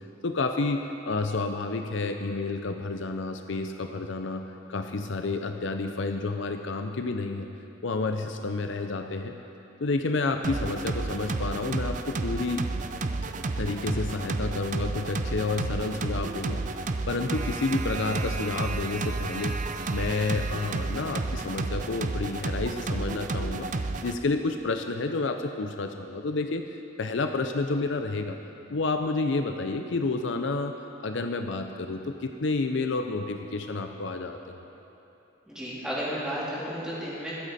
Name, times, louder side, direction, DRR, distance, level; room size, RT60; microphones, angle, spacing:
voice 1, 0.0-4.4 4.7-7.5 7.8-9.3 9.8-12.7 13.6-16.6 17.1-19.6 19.9-23.7 24.0-26.6 27.0-28.4 28.7-30.7 31.0-34.7, left 3 dB, 65° left, 6 dB, 0.6 m, -30 dB
sound 1, 10.4-24.1, right 3 dB, 40° right, 0.5 m, -31 dB
voice 2, 35.5-37.3, equal, 5° right, -10 dB, 3.4 m, -33 dB
22.5 x 8.3 x 4.2 m, 2.9 s
head